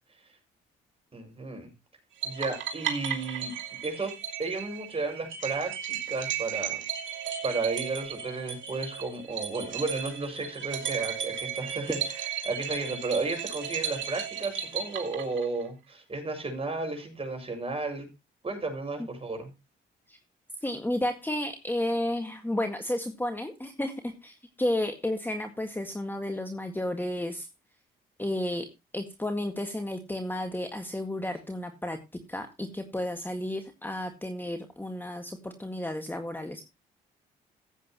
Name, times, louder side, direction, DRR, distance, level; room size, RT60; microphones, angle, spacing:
voice 1, 1.1-1.7 2.2-3.5 3.8-4.1 4.4-6.8 7.4-18.1 18.4-19.5, right 3 dB, 30° right, 4 dB, 6.6 m, -33 dB
sound 1, 2.2-15.7, right 9 dB, 70° right, 2.8 m, -35 dB
voice 2, 20.6-27.5 28.2-28.7 28.9-32.0 32.3-36.7, left 1 dB, 10° left, 6 dB, 1.9 m, -32 dB
15.5 x 8.4 x 3.0 m, 0.25 s
supercardioid pair, 65°, 20 cm